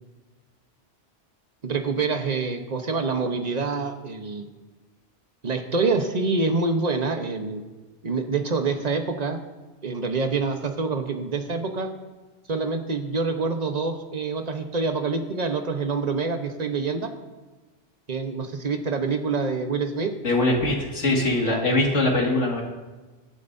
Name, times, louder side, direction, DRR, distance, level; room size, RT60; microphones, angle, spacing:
voice 1, 1.6-4.4 5.4-7.6 8.0-9.4 9.8-11.9 12.5-17.1 18.1-20.1 21.4-21.6, right 4 dB, 35° right, 5 dB, 1.1 m, -26 dB
voice 2, 20.2-22.6, left 2 dB, 85° left, -1 dB, 2.5 m, -22 dB
23.0 x 9.3 x 2.7 m, 1.2 s
omnidirectional pair, 1.2 m